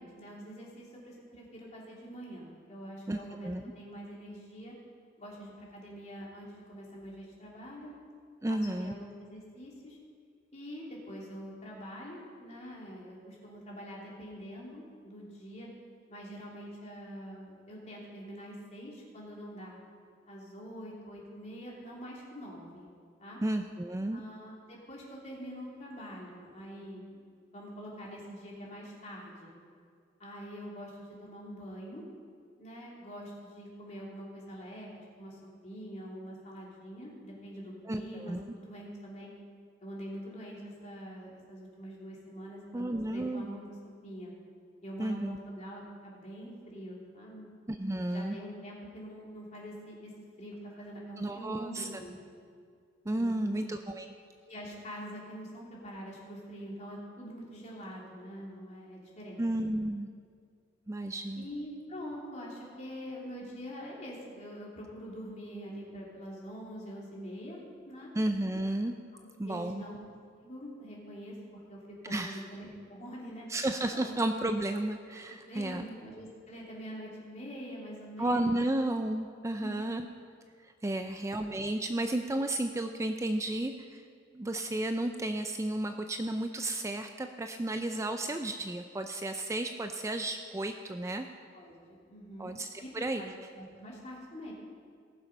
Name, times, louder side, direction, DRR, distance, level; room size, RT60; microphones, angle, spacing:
voice 1, 0.0-4.7 5.2-7.9 8.5-10.0 10.5-15.7 16.1-19.8 20.3-22.9 23.2-23.4 24.1-27.2 27.5-29.5 30.2-32.0 32.6-34.9 35.2-39.3 39.8-43.6 44.0-44.3 44.8-47.5 48.1-50.1 50.4-52.1 53.2-53.6 54.4-59.4 61.4-68.1 69.4-70.0 70.4-71.8 72.0-73.5 73.9-74.1 75.5-78.5 79.5-80.1 80.8-81.2 91.5-91.8 92.1-92.5 92.8-92.9 93.2-93.3 93.6-94.5, equal, 35° left, -4 dB, 3.1 m, -45 dB
voice 2, 8.4-8.9 23.4-24.2 37.9-38.4 42.7-43.5 45.0-45.4 47.7-48.4 51.2-51.9 53.1-54.1 59.4-60.1 60.9-61.5 68.1-68.9 69.4-69.8 72.0-72.5 73.5-75.9 78.2-80.1 80.6-84.0 84.3-91.3 92.4-92.7 92.9-93.2, right 1 dB, 15° right, 6 dB, 0.4 m, -32 dB
18.5 x 7.3 x 5.3 m, 2.1 s
head